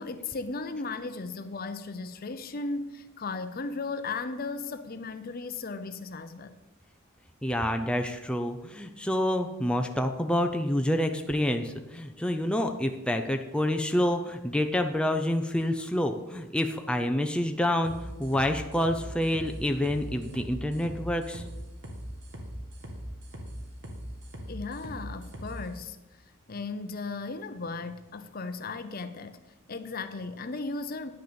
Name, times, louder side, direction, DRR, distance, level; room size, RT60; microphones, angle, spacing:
voice 1, 0.0-6.5 24.5-26.0 26.5-29.4 29.7-31.1, left 3 dB, 45° left, 0.7 m, -36 dB
voice 2, 7.4-21.4, left 1 dB, 5° left, 0.6 m, -28 dB
sound 1, 17.8-25.6, equal, 55° right, 1.9 m, -40 dB
10.0 x 6.6 x 6.9 m
head